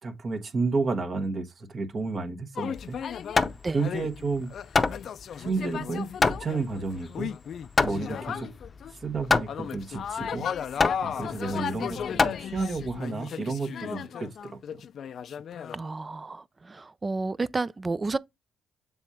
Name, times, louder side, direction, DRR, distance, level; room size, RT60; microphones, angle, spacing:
voice 1, 0.0-3.0 3.7-4.5 5.4-7.3 7.8-8.5 9.0-10.5 11.0-14.8, right 4 dB, 45° right, 1.2 m, -31 dB
sound 1, 2.6-3.5 3.8-8.9 9.2-15.8, left 8 dB, 60° left, 0.4 m, -35 dB
Hammer, 2.8-13.0, left 4 dB, 30° left, 0.7 m, -28 dB
voice 2, 15.7-18.2, right 3 dB, 25° right, 0.4 m, -31 dB
7.1 x 3.6 x 4.2 m
cardioid pair, 90°, 0 cm